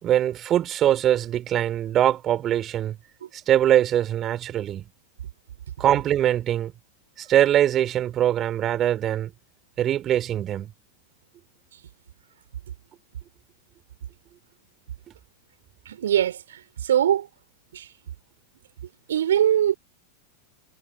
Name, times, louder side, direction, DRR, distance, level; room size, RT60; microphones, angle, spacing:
voice 1, 0.0-3.0 3.5-4.8 5.8-6.7 7.2-9.3 9.8-10.7, right 11 dB, 30° right, 4.9 m, -22 dB
voice 2, 15.9-17.3 17.7-17.9 19.1-19.7, right 10 dB, 65° right, 4.4 m, -22 dB
figure-of-eight pair, 90°, 0 cm